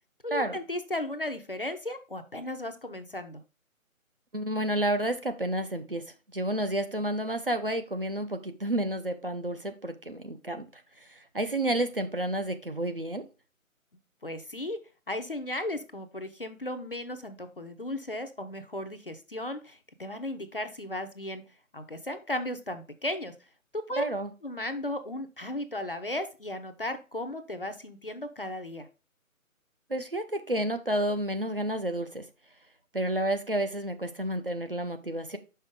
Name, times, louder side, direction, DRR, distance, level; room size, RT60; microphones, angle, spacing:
voice 1, 0.2-3.4 14.2-14.8 15.1-21.4 21.7-23.3 23.7-24.0 24.4-28.9, left 1 dB, 40° left, 8 dB, 0.5 m, -35 dB
voice 2, 4.3-6.0 6.3-10.6 11.0-13.2 23.9-24.3 29.9-32.2 32.9-35.4, right 1 dB, 40° right, 8 dB, 0.5 m, -30 dB
5.6 x 5.5 x 3.5 m, 0.32 s
figure-of-eight pair, 155°, 42 cm